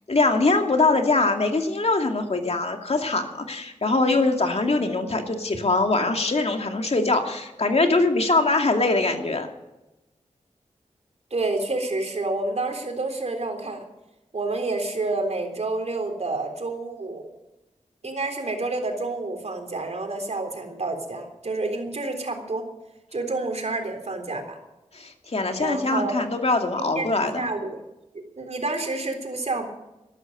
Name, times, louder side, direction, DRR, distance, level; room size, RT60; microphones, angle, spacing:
voice 1, 0.1-9.5 24.9-27.5, left 3 dB, 55° left, 4 dB, 2.4 m, -22 dB
voice 2, 11.3-13.9 14.3-17.3 18.0-22.7 23.1-24.6 25.6-26.2 26.8-27.8 28.1-29.7, right 2 dB, 65° right, 4 dB, 3.6 m, -29 dB
13.0 x 12.5 x 7.8 m, 0.97 s
cardioid pair, 50°, 12 cm